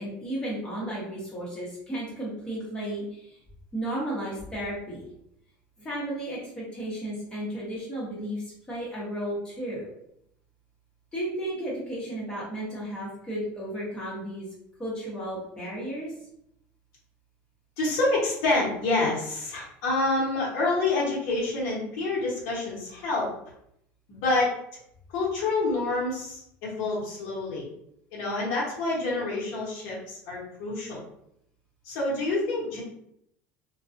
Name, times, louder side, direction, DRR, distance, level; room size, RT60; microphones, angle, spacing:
voice 1, 0.0-3.4 3.7-5.1 5.8-9.8 11.1-14.5 14.8-16.2, right 1 dB, 15° left, -6 dB, 0.8 m, -34 dB
voice 2, 17.8-23.3 24.1-24.5 25.1-27.7 28.1-31.0 31.8-32.8, left 2 dB, 70° left, -5 dB, 1.0 m, -27 dB
2.3 x 2.2 x 2.5 m, 0.75 s
cardioid pair, 145°, 5 cm